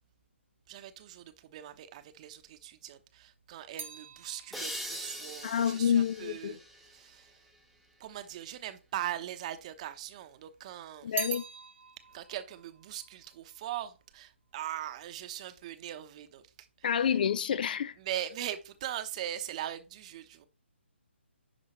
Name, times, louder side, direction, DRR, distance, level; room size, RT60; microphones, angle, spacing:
voice 1, 0.7-7.5 8.0-11.3 12.1-17.2 18.0-20.4, right 12 dB, 30° right, 0.9 m, -41 dB
sound 1, 2.8-7.2 8.0-8.8 9.1-10.2 10.6-14.1 14.4-14.9, right 6 dB, 75° right, 1.6 m, -44 dB
sound 2, 4.5-7.9, equal, ahead, 0.9 m, -43 dB
voice 2, 5.4-6.6 11.0-11.4 16.8-17.9, left 8 dB, 45° left, 0.5 m, -28 dB
10.5 x 5.4 x 3.1 m
hypercardioid pair, 150°, 7 cm